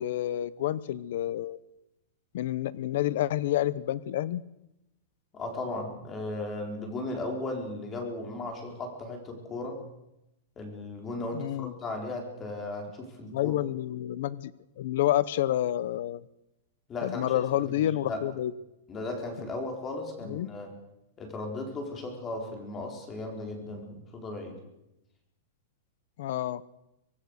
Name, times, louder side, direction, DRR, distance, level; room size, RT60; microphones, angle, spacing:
voice 1, 0.0-1.6 2.3-4.4 11.3-11.7 13.3-16.3 17.0-18.5 20.3-20.5 26.2-26.6, left 13 dB, 60° left, 18 dB, 0.8 m, -29 dB
voice 2, 5.3-9.8 10.6-13.6 16.9-18.2 18.9-20.8 21.2-24.6, left 2 dB, 20° left, 3 dB, 4.3 m, -36 dB
25.0 x 19.0 x 6.6 m, 0.90 s
supercardioid pair, 160°, 0 cm